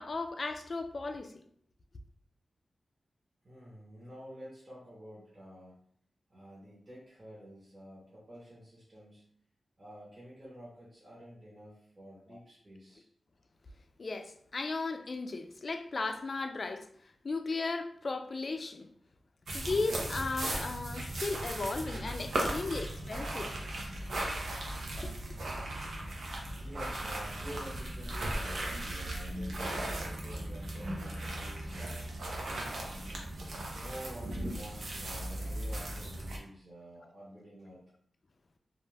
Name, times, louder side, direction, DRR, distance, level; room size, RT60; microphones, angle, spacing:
voice 1, 0.0-1.4 12.3-12.4 14.0-16.9 17.2-18.9 19.5-23.7 25.0-25.4, left 3 dB, 55° left, 0.3 m, -36 dB
voice 2, 3.4-5.8 6.3-9.3 9.8-13.1 26.5-32.1 32.6-33.3 33.7-37.8, equal, 40° right, 1.0 m, -49 dB
sound 1, 19.5-36.4, right 1 dB, 80° right, 0.6 m, -37 dB
2.4 x 2.2 x 3.3 m
cardioid pair, 55°, 0 cm